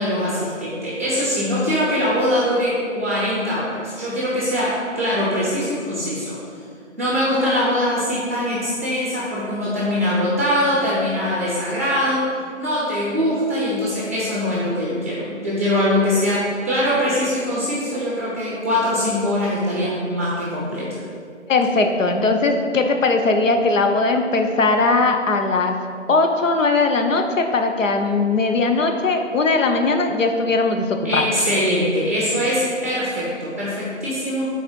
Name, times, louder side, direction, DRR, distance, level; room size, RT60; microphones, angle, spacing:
voice 1, 0.0-6.3 7.0-12.3 12.6-20.9 31.0-34.5, left 1 dB, 10° right, -7 dB, 0.7 m, -22 dB
voice 2, 21.5-25.8 26.1-31.3, left 3 dB, 75° left, 5 dB, 0.8 m, -19 dB
5.0 x 4.1 x 5.3 m, 2.1 s
figure-of-eight pair, 160°, 39 cm